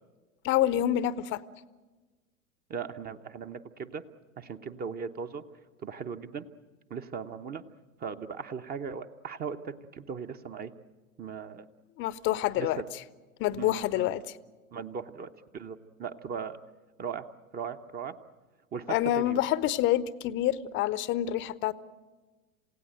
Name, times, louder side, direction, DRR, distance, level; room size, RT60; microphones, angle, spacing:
voice 1, 0.4-1.4 12.0-12.8 13.4-14.2 18.9-21.7, left 12 dB, 25° left, 18 dB, 0.7 m, -27 dB
voice 2, 2.7-4.0 4.4-5.4 5.8-6.5 6.9-7.6 8.0-10.7 11.2-11.7 12.6-12.9 13.6-14.1 14.7-16.6 17.0-17.3 17.5-18.2 18.7-19.4, right 6 dB, 20° right, 10 dB, 0.8 m, -38 dB
28.0 x 17.0 x 9.1 m, 1.3 s
figure-of-eight pair, 95°, 43 cm